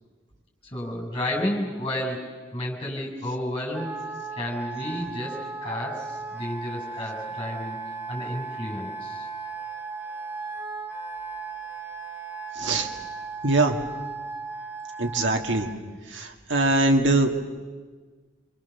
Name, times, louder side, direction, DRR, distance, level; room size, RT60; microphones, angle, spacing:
voice 1, 0.7-2.2 2.5-3.9 4.4-9.3, left 1 dB, 25° left, 0 dB, 6.9 m, -31 dB
Wind instrument woodwind instrument, 3.7-15.8, right 4 dB, 10° right, 1.9 m, -36 dB
voice 2, 12.6-12.9 13.4-13.8 15.0-15.7 16.1-17.4, right 2 dB, 70° right, 3 dB, 2.4 m, -22 dB
27.5 x 25.0 x 7.2 m, 1.4 s
head